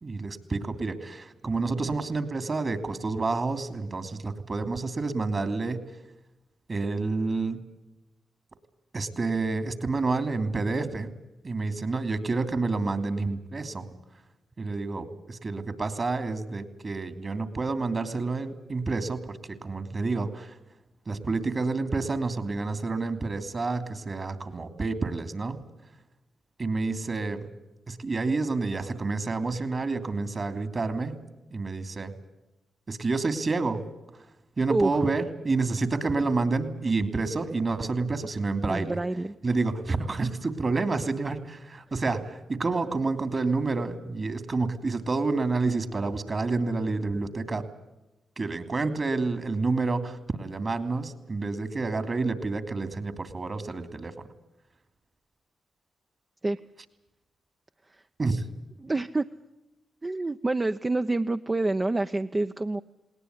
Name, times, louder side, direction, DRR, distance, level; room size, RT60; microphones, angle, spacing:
voice 1, 0.0-5.8 6.7-7.6 8.9-11.1 11.4-13.9 14.6-20.6 21.1-25.6 26.6-27.5 27.9-31.1 31.5-32.1 32.9-33.8 34.6-39.0 39.4-47.6 48.4-54.3 58.2-58.4, right 3 dB, 45° right, 10 dB, 3.0 m, -29 dB
voice 2, 38.6-39.3 56.4-56.6 58.8-59.2 60.0-62.8, right 2 dB, 30° right, 8 dB, 0.8 m, -27 dB
20.0 x 18.5 x 9.8 m, 0.98 s
supercardioid pair, 45°, 0 cm